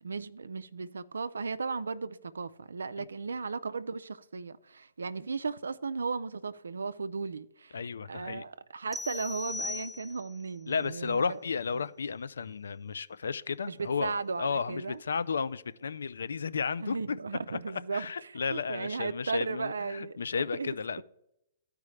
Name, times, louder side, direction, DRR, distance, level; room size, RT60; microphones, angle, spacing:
voice 1, 0.0-11.4 11.7-11.9 13.6-15.0 16.8-21.0, right 4 dB, 85° right, 0.3 m, -36 dB
voice 2, 7.7-8.4 10.7-17.2 17.5-17.6 17.9-21.0, left 5 dB, 80° left, 0.4 m, -33 dB
sound 1, 8.9-10.5, left 3 dB, 10° right, 0.4 m, -38 dB
12.5 x 4.8 x 3.2 m
hypercardioid pair, 125°, 0 cm